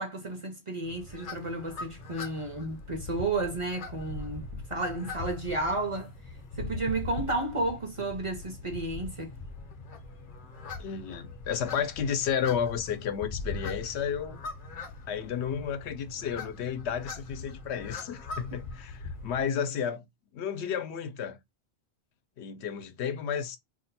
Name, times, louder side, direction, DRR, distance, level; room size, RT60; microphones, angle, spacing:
voice 1, 0.0-6.1 6.6-9.3, right 2 dB, 40° right, 0.5 m, -32 dB
sound 1, 0.8-19.4, left 3 dB, 55° left, 0.8 m, -41 dB
voice 2, 10.8-14.4 15.1-20.0 20.3-21.4 22.4-23.6, left 7 dB, 90° left, 0.9 m, -32 dB
2.6 x 2.1 x 4.0 m
omnidirectional pair, 1.1 m